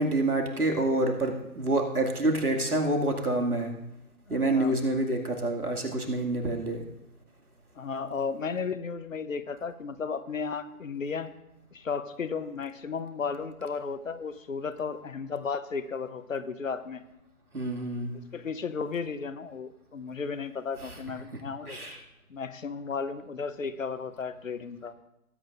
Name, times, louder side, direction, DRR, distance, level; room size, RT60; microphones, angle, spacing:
voice 1, 0.0-3.7 4.3-6.8 17.5-18.1 21.6-22.0, right 2 dB, 90° right, 1 dB, 2.3 m, -27 dB
voice 2, 4.3-4.8 7.8-11.3 11.7-17.0 18.3-21.8 22.3-24.9, left 5 dB, 60° left, 12 dB, 0.9 m, -34 dB
19.0 x 8.9 x 2.5 m, 0.88 s
figure-of-eight pair, 145°, 44 cm